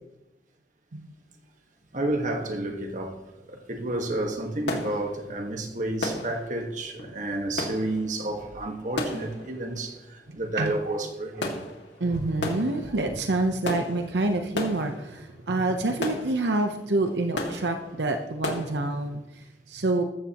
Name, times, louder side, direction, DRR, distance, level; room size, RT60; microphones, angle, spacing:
voice 1, 1.9-3.2 3.5-11.6 12.0-12.2, right 2 dB, 45° right, 1.6 m, -31 dB
sound 1, 3.6-3.8 4.1-18.7, left 1 dB, 90° left, 2.1 m, -36 dB
voice 2, 10.6-11.0 12.0-20.0, right 2 dB, 75° right, 0.9 m, -27 dB
14.5 x 13.5 x 3.0 m
head